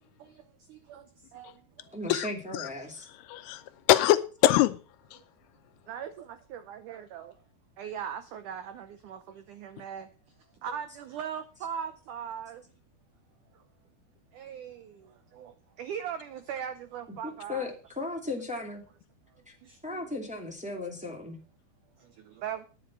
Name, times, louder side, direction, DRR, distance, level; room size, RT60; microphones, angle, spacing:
voice 1, 0.2-2.0 5.9-7.4 7.8-10.1 10.6-12.6 13.5-13.6 14.3-17.7 19.6-20.1 22.0-22.7, right 8 dB, 80° right, 1.8 m, -40 dB
voice 2, 1.9-3.1 17.2-18.8 19.4-19.5 19.8-21.4, left 2 dB, 5° right, 1.4 m, -36 dB
voice 3, 3.1-4.8 5.1-5.2, left 15 dB, 80° left, 2.6 m, -24 dB
10.0 x 10.0 x 6.0 m
omnidirectional pair, 4.7 m